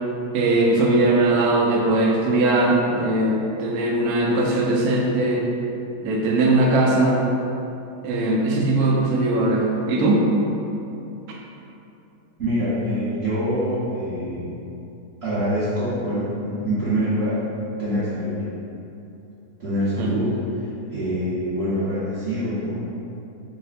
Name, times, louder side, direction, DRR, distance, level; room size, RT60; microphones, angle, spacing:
voice 1, 0.3-5.4 6.0-7.2 8.0-10.2 11.3-11.4 20.0-20.1, right 2 dB, 75° right, -1 dB, 1.1 m, -20 dB
voice 2, 12.4-14.5 15.2-17.4 17.8-18.3 19.6-22.8, equal, 45° right, -14 dB, 1.2 m, -25 dB
4.0 x 2.1 x 4.1 m, 2.8 s
omnidirectional pair, 1.7 m